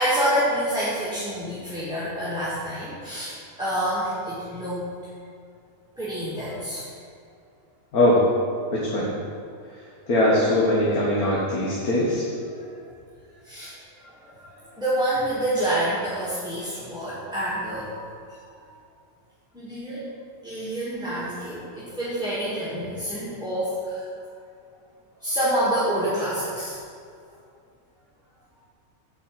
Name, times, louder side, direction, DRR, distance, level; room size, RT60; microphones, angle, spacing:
voice 1, 0.0-4.9 6.0-6.9 13.4-13.7 14.1-14.2 14.4-17.9 18.6-18.7 19.5-20.1 20.4-24.1 25.2-26.8, right 1 dB, 5° right, -10 dB, 2.0 m, -27 dB
voice 2, 8.7-9.1 10.1-12.2, left 1 dB, 85° left, -5 dB, 1.9 m, -21 dB
8.4 x 5.4 x 7.7 m, 2.3 s
omnidirectional pair, 1.5 m